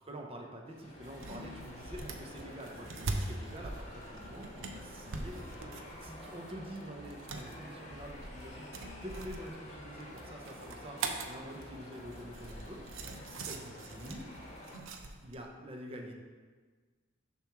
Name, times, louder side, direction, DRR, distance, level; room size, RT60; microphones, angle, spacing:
voice 1, 0.1-8.7 9.0-11.0 11.3-12.8 13.3-14.3 15.2-16.1, equal, 30° right, 1 dB, 0.7 m, -46 dB
sound 1, 0.7-14.8, left 1 dB, 35° left, 1.0 m, -49 dB
sound 2, 1.0-15.4, right 3 dB, 80° right, 0.6 m, -43 dB
6.8 x 3.0 x 5.9 m, 1.4 s
head